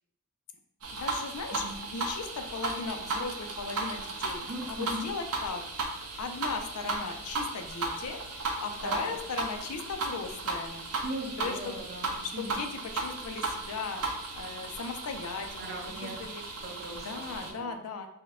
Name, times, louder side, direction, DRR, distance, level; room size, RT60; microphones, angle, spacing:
sound 1, 0.8-17.5, right 3 dB, 85° right, 0.7 m, -36 dB
voice 1, 0.9-1.6 1.9-4.4 4.7-5.6 6.2-8.2 8.6-10.9 11.4-11.8 12.2-14.1 14.3-16.4 16.9-18.1, left 4 dB, 85° left, 6 dB, 0.5 m, -37 dB
voice 2, 4.4-5.1 8.8-9.1 11.0-12.7 15.6-16.2 16.6-17.7, right 1 dB, 45° right, -2 dB, 0.9 m, -39 dB
4.3 x 2.2 x 3.6 m, 0.79 s
head